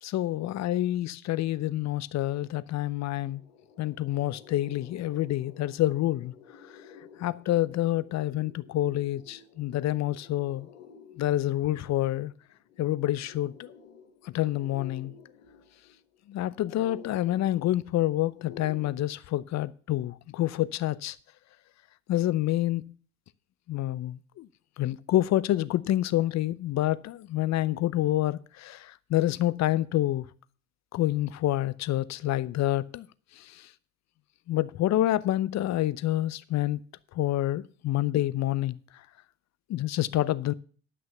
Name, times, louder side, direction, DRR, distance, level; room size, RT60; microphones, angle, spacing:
voice 1, 0.0-3.4 3.8-6.3 7.2-10.7 11.2-12.3 12.8-13.7 14.3-15.1 16.3-21.2 22.1-22.9 23.7-24.5 24.8-30.3 30.9-33.1 33.4-33.7 34.5-36.8 37.1-38.8 39.7-40.5, left 14 dB, 45° left, 0.7 m, -28 dB
sound 1, 2.8-18.9, left 6 dB, 75° left, 2.0 m, -52 dB
11.0 x 6.2 x 6.9 m
hypercardioid pair, 70°, 39 cm